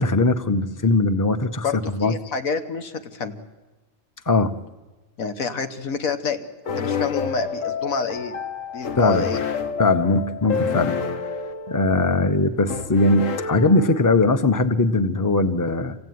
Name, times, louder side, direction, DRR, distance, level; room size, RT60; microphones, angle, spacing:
voice 1, 0.0-1.7 1.9-2.1 4.3-4.5 9.0-9.3 9.8-10.9 11.7-16.0, left 2 dB, 15° left, 9 dB, 0.8 m, -20 dB
voice 2, 1.6-3.4 5.2-6.4 6.7-8.3 8.7-9.4, left 5 dB, 90° left, 7 dB, 1.7 m, -28 dB
sound 1, 6.7-14.3, left 6 dB, 75° left, 1.4 m, -29 dB
27.0 x 16.5 x 9.5 m, 1.2 s
omnidirectional pair, 1.4 m